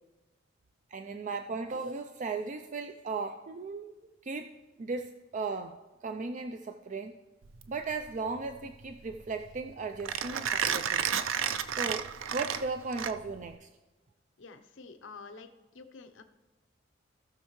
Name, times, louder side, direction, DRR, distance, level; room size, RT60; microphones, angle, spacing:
voice 1, 0.9-3.9 4.2-4.5 4.8-5.8 6.0-7.1 7.7-11.1 11.7-12.1 12.3-13.7, right 4 dB, 40° right, 7 dB, 0.4 m, -36 dB
Mechanisms, 7.4-13.5, right 8 dB, 90° right, 0.5 m, -33 dB
voice 2, 14.4-16.2, left 4 dB, 70° left, 8 dB, 0.8 m, -49 dB
18.0 x 6.5 x 3.1 m, 1.2 s
head